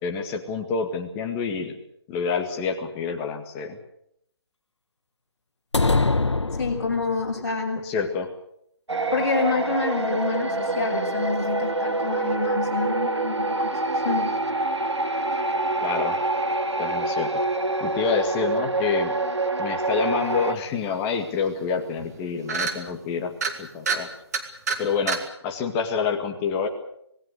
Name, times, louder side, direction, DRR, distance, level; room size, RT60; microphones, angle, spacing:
voice 1, 0.0-1.8 2.1-3.8 7.8-8.3 15.8-16.2 16.8-17.4 17.8-19.1 19.6-24.1 24.8-26.7, left 5 dB, 15° left, 4 dB, 2.0 m, -28 dB
sound 1, 5.7-7.3, left 3 dB, 90° left, 1.0 m, -23 dB
voice 2, 6.6-7.9 9.1-14.4, left 4 dB, 40° left, -1 dB, 6.6 m, -27 dB
sound 2, 8.9-20.6, right 2 dB, 85° right, 2.0 m, -26 dB
sound 3, 21.1-21.2 21.5-21.7 22.0-22.2 22.5-22.8 23.3-23.5 23.9-24.0 24.3-24.8 25.1-25.2, right 5 dB, 35° right, 2.5 m, -26 dB
26.5 x 19.5 x 6.7 m, 0.73 s
figure-of-eight pair, 155°, 14 cm